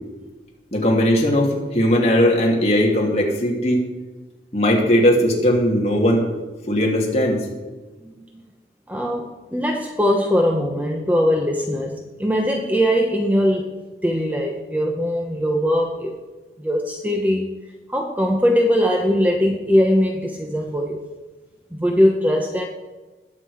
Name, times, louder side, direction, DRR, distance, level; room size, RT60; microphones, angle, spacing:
voice 1, 0.7-3.8 4.5-6.2 6.7-7.5, equal, 35° left, -1 dB, 2.5 m, -18 dB
voice 2, 8.9-13.7 14.0-16.1 16.6-17.5 17.9-21.0 21.7-22.7, equal, 10° right, 2 dB, 0.8 m, -20 dB
19.5 x 7.6 x 4.9 m, 1.2 s
head